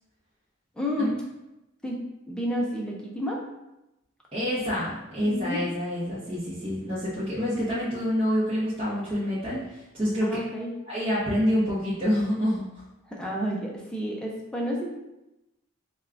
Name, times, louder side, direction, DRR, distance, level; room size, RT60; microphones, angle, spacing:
voice 1, 0.8-1.2 1.8-2.0 2.3-3.4 5.2-5.6 10.2-10.7 13.1-14.9, equal, 5° left, -3 dB, 0.5 m, -30 dB
voice 2, 4.3-10.4 10.9-12.8, equal, 25° right, -11 dB, 0.8 m, -27 dB
3.6 x 2.3 x 3.3 m, 0.94 s
head